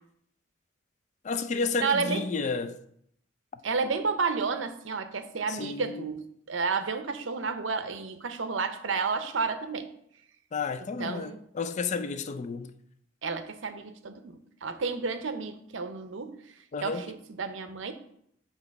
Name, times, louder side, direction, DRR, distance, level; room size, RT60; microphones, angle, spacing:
voice 1, 1.2-2.8 5.5-6.1 10.5-12.7 16.7-17.1, left 4 dB, 40° left, 0.4 m, -31 dB
voice 2, 1.8-2.2 3.6-6.2 6.5-9.9 11.0-11.4 13.2-16.4 16.8-17.9, right 4 dB, 85° right, 0.7 m, -31 dB
7.9 x 2.9 x 5.2 m
head